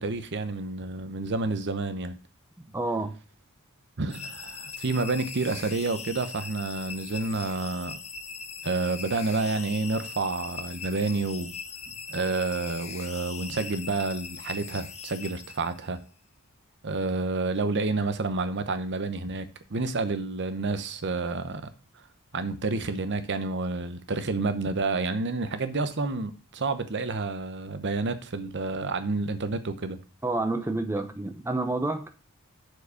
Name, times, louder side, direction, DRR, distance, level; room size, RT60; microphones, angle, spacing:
voice 1, 0.0-2.2 4.0-8.0 8.6-11.5 12.1-16.0 16.8-21.7 22.3-30.0, right 3 dB, 55° right, 0.9 m, -29 dB
voice 2, 2.7-3.1 30.2-32.1, right 2 dB, 10° right, 0.7 m, -29 dB
sound 1, 4.1-16.0, left 6 dB, 30° left, 0.9 m, -40 dB
6.9 x 4.9 x 6.3 m
head